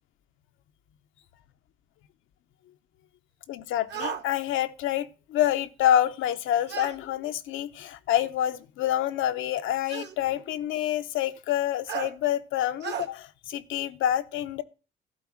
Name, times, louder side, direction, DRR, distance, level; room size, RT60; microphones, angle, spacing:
voice 1, 3.5-14.6, left 11 dB, 85° left, 0.7 m, -27 dB
sound 1, 3.9-4.2 6.7-7.0 8.2-8.3 9.9-10.2 11.9-12.1 12.8-13.1, right 8 dB, 60° right, 1.3 m, -34 dB
12.0 x 4.1 x 7.3 m
cardioid pair, 90°, 20 cm